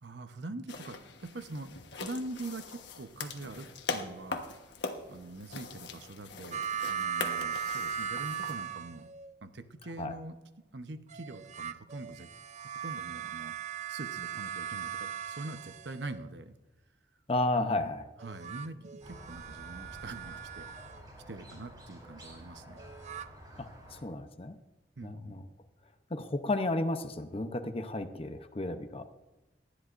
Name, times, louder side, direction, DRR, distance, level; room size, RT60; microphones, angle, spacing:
voice 1, 0.0-4.4 5.1-9.0 9.4-10.4 10.7-12.3 12.6-13.5 13.9-16.6 17.6-17.9 18.2-20.7 21.3-22.8 25.0-25.5, right 2 dB, 75° right, 9 dB, 0.9 m, -43 dB
sound 1, 0.7-8.6, left 4 dB, 80° left, 1.2 m, -41 dB
sound 2, 6.5-9.3 11.1-16.3 18.2-21.0 22.8-23.3, right 8 dB, 40° right, 0.4 m, -38 dB
voice 2, 17.3-18.0 23.6-24.6 25.0-25.4 26.1-29.0, left 2 dB, 35° left, 8 dB, 0.7 m, -33 dB
Squeak, 19.0-24.0, equal, 25° right, 4.2 m, -50 dB
19.0 x 12.0 x 2.6 m, 1.1 s
head